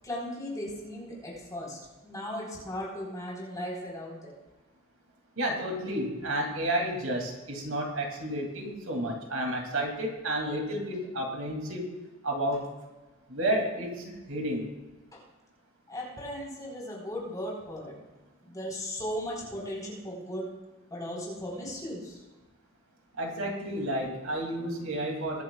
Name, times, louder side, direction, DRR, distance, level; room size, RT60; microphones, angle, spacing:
voice 1, 0.0-4.3 15.1-15.2 15.9-17.9 18.4-20.5 20.9-22.2, equal, 15° left, -3 dB, 4.5 m, -37 dB
voice 2, 5.4-11.9 12.2-12.6 13.3-14.7 23.2-25.4, right 1 dB, 80° right, 1 dB, 2.8 m, -31 dB
22.5 x 11.0 x 2.4 m, 1.2 s
head